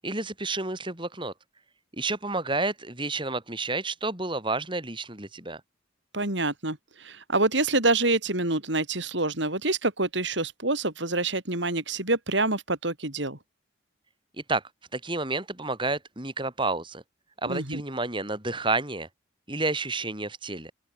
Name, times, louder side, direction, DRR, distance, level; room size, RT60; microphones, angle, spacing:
voice 1, 0.0-1.3 1.9-5.6 14.5-14.6 14.9-17.0 17.4-19.1 19.5-20.7, right 3 dB, 25° right, 4.5 m, -30 dB
voice 2, 6.1-13.4 17.5-17.8, right 2 dB, 65° right, 5.3 m, -26 dB
open air
head